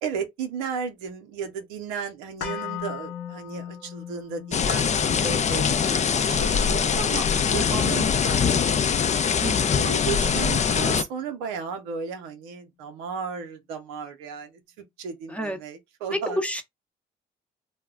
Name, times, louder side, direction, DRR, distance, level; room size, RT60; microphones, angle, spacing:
voice 1, 0.0-7.3 7.5-9.1 9.7-14.6 15.0-16.4, right 6 dB, 85° right, 0.6 m, -34 dB
sound 1, 2.4-10.5 10.8-10.9, left 10 dB, 75° left, 0.9 m, -40 dB
sound 2, 4.5-11.0, left 7 dB, 35° left, 0.4 m, -23 dB
voice 2, 9.4-9.9 15.3-15.6 16.1-16.6, equal, 5° left, 0.7 m, -29 dB
2.2 x 2.0 x 3.5 m
hypercardioid pair, 50°, 20 cm